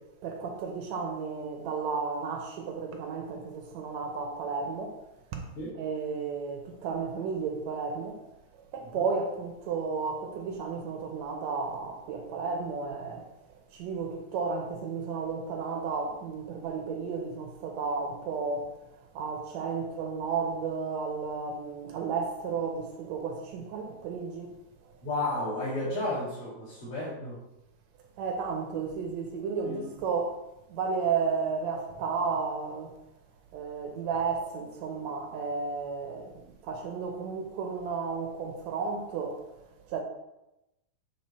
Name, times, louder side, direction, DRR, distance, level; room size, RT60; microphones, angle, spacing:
voice 1, 0.2-5.0 5.3-5.5 5.8-8.2 8.7-13.3 13.7-18.8 19.1-24.5 28.2-30.4 30.7-32.9 33.5-40.0, right 5 dB, 75° right, 1.9 m, -33 dB
voice 2, 25.0-27.4 29.6-29.9, left 2 dB, 50° left, 2.9 m, -32 dB
8.7 x 3.7 x 4.2 m
omnidirectional pair, 3.5 m